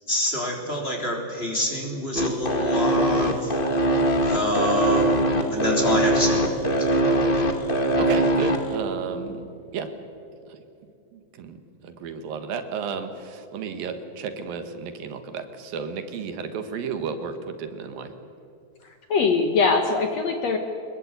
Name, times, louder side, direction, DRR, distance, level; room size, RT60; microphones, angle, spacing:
voice 1, 0.1-3.6 4.3-6.7, equal, 15° left, 0 dB, 3.4 m, -27 dB
sound 1, 2.1-8.7, right 1 dB, 35° left, 0.8 m, -21 dB
voice 2, 8.0-9.9 10.5-10.6 11.1-11.6 11.8-18.1, right 6 dB, 80° right, 8 dB, 3.2 m, -33 dB
voice 3, 18.8-20.6, left 4 dB, 60° left, 5 dB, 2.1 m, -22 dB
23.0 x 21.5 x 8.3 m, 2.6 s
omnidirectional pair, 4.1 m